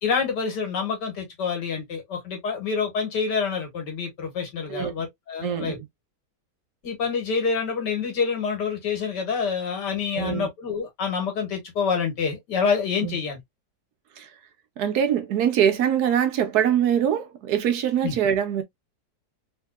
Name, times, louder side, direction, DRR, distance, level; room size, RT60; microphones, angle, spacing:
voice 1, 0.0-5.8 6.8-13.4 18.0-18.2, left 5 dB, 85° left, 1.9 m, -27 dB
voice 2, 5.4-5.9 10.1-10.5 13.0-13.2 14.2-14.3 14.8-18.6, right 9 dB, 70° right, 1.2 m, -23 dB
3.6 x 2.7 x 2.3 m
omnidirectional pair, 1.8 m